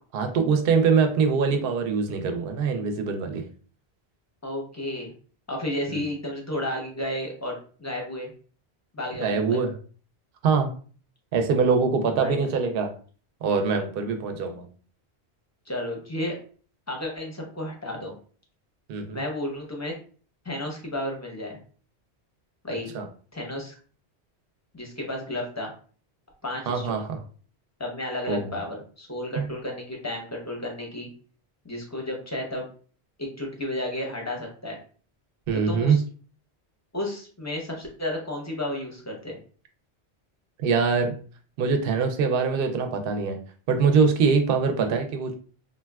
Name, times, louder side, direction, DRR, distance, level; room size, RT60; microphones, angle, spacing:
voice 1, 0.1-3.4 5.9-6.0 9.2-9.7 10.4-10.7 11.3-12.9 13.4-14.6 18.9-19.2 22.9-23.1 26.7-27.2 28.3-28.5 29.4-29.5 35.5-36.0 40.6-41.2 41.6-43.4 43.7-45.4, right 5 dB, 65° right, 5 dB, 0.7 m, -23 dB
voice 2, 4.4-5.1 5.5-8.3 8.9-9.6 12.2-12.5 15.7-16.4 16.9-18.1 19.1-19.9 20.4-21.6 22.6-22.9 23.3-23.7 24.7-25.7 26.4-27.0 27.8-31.1 31.6-32.6 33.2-34.8 35.5-36.0 36.9-39.4, left 1 dB, 20° left, 0 dB, 0.6 m, -32 dB
3.7 x 2.2 x 2.2 m, 0.41 s
omnidirectional pair, 1.1 m